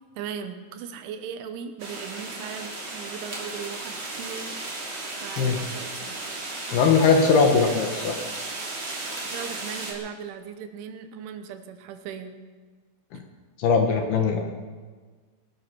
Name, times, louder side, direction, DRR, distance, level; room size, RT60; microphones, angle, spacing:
voice 1, 0.2-4.5 5.2-6.2 9.2-12.4, right 7 dB, 80° right, 8 dB, 3.4 m, -38 dB
sound 1, 1.8-9.9, right 2 dB, 30° right, 2.8 m, -35 dB
voice 2, 6.7-8.2 13.1-13.2 13.6-14.4, left 5 dB, 70° left, 4 dB, 2.7 m, -20 dB
20.0 x 11.5 x 6.1 m, 1.5 s
omnidirectional pair, 5.6 m